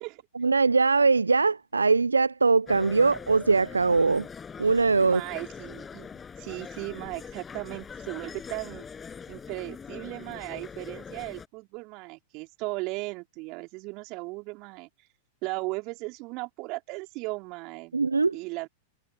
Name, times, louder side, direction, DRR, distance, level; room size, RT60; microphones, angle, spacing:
voice 1, 0.4-4.3 4.6-5.2 17.9-18.4, right 4 dB, 85° right, 0.5 m, -22 dB
sound 1, 2.7-11.5, left 6 dB, 20° left, 6.6 m, -42 dB
voice 2, 5.0-8.9 9.3-14.9 15.4-18.0 18.3-18.7, right 26 dB, 45° right, 4.5 m, -37 dB
figure-of-eight pair, 95°, 0 cm